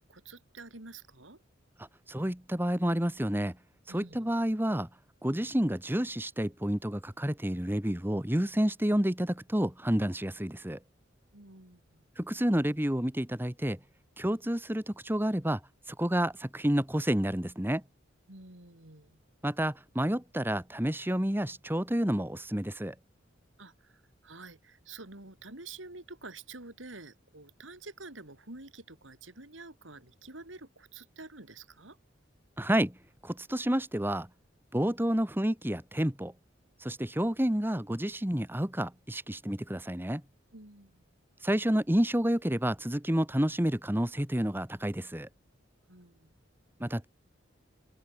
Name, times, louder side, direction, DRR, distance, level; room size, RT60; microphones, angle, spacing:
voice 1, 0.0-1.4 3.9-4.3 11.3-12.0 18.3-19.2 23.6-32.0 40.5-41.0 45.9-46.3, right 3 dB, 75° right, 4.0 m, -49 dB
voice 2, 2.1-3.5 3.9-4.9 5.2-10.8 12.2-13.8 14.2-15.6 15.9-17.8 19.4-22.9 32.6-33.0 33.2-34.3 34.7-36.3 36.8-40.2 41.4-45.3 46.8-47.0, equal, 10° right, 1.7 m, -29 dB
head